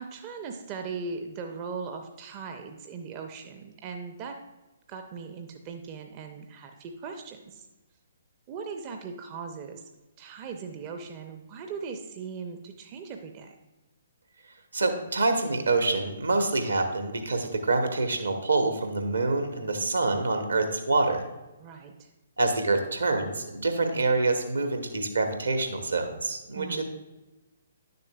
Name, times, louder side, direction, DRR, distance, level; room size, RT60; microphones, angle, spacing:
voice 1, 0.0-4.4 4.9-7.7 8.5-9.9 10.2-13.6 21.6-22.1 26.5-26.8, right 5 dB, 30° right, 4 dB, 0.6 m, -39 dB
voice 2, 14.7-21.2 22.4-26.8, right 3 dB, 70° right, 5 dB, 1.1 m, -26 dB
10.0 x 6.7 x 2.3 m, 1.1 s
figure-of-eight pair, 125°, 0 cm